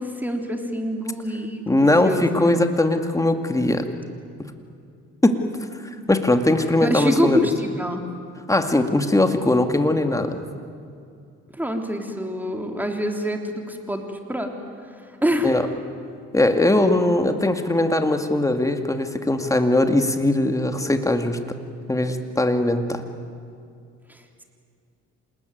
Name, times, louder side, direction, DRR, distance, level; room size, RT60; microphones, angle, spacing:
voice 1, 0.0-2.6 6.8-8.0 11.5-14.0 14.3-14.5 15.0-15.5 24.1-24.4, equal, 5° right, 3 dB, 3.6 m, -26 dB
voice 2, 1.7-3.8 5.2-5.4 6.1-7.4 8.5-10.5 15.4-15.6 16.3-21.4 21.9-23.0, left 1 dB, 10° left, 6 dB, 2.2 m, -20 dB
27.5 x 20.0 x 9.4 m, 2.4 s
cardioid pair, 90°, 30 cm